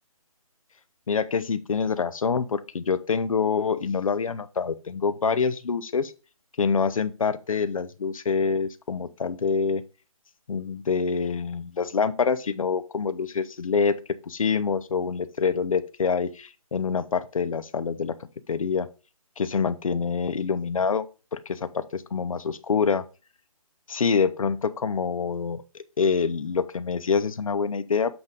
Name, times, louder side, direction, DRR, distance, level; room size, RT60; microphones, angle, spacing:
voice 1, 1.1-6.1 6.6-9.8 10.5-13.9 14.3-18.1 18.5-18.9 19.4-21.0 21.3-23.0 23.9-25.6 26.0-28.2, left 5 dB, 65° left, 0.7 m, -26 dB
7.8 x 3.7 x 3.9 m
hypercardioid pair, 180°, 19 cm